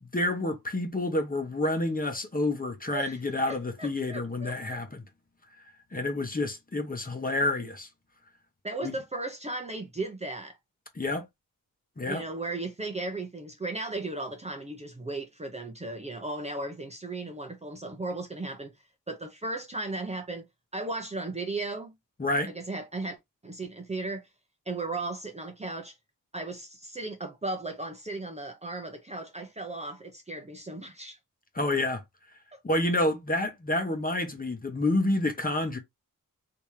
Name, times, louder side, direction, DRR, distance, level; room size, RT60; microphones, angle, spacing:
voice 1, 0.0-5.0 5.9-7.9 8.8-8.9 10.9-11.3 12.0-12.2 22.2-22.5 31.5-32.0 32.6-35.8, left 2 dB, 25° left, 1.0 m, -28 dB
voice 2, 3.5-4.5 8.6-10.6 12.1-18.7 19.1-20.5 20.7-21.9 22.5-23.2 23.4-24.3 24.7-25.9 26.3-31.2 32.5-32.6, right 2 dB, 20° right, 0.7 m, -36 dB
3.4 x 2.9 x 3.2 m
wide cardioid pair, 100°, 33 cm